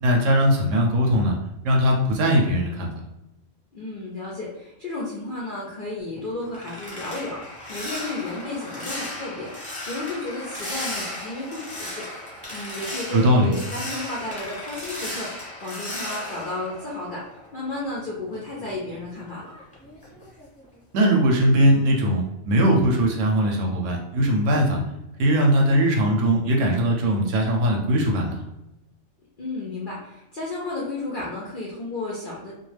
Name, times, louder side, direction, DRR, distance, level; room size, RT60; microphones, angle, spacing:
voice 1, 0.0-1.3 1.6-2.9 13.1-13.5 20.9-24.8 25.2-28.4, equal, 70° right, 1 dB, 0.9 m, -20 dB
voice 2, 3.7-9.5 9.9-12.1 12.5-19.5 29.4-32.5, left 2 dB, 60° left, -5 dB, 0.5 m, -33 dB
sound 1, 6.0-17.6 18.0-20.6 21.0-21.3 21.7-21.9, left 1 dB, 5° left, 0.8 m, -36 dB
2.2 x 2.2 x 3.1 m, 0.92 s
omnidirectional pair, 1.4 m